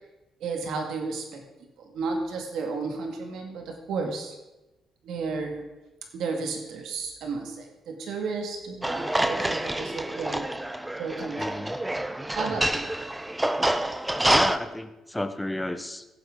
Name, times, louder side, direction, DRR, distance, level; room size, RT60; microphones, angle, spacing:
voice 1, 0.4-1.4 1.8-4.4 5.0-5.7 6.1-10.5 11.0-11.6 12.4-13.0, right 4 dB, 80° right, 3 dB, 2.0 m, -33 dB
sound 1, 8.8-14.6, right 1 dB, 10° right, 0.6 m, -27 dB
voice 2, 11.4-11.8 12.5-12.6 13.6-13.8 14.3-16.1, left 1 dB, 10° left, 9 dB, 1.0 m, -32 dB
17.0 x 7.8 x 3.8 m, 1.0 s
cardioid pair, 90°, 0 cm